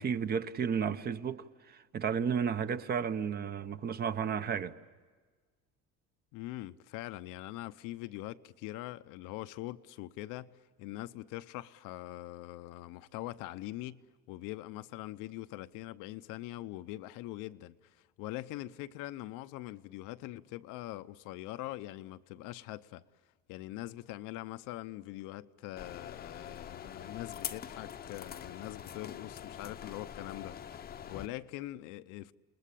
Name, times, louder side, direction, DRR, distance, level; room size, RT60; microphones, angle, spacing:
voice 1, 0.0-4.8, right 7 dB, 30° right, 0.8 m, -33 dB
voice 2, 6.3-17.8 18.2-23.0 23.5-32.3, left 16 dB, 70° left, 0.8 m, -43 dB
sound 1, 25.8-31.3, left 9 dB, 30° left, 0.8 m, -44 dB
29.0 x 20.5 x 8.5 m
cardioid pair, 155°, 33 cm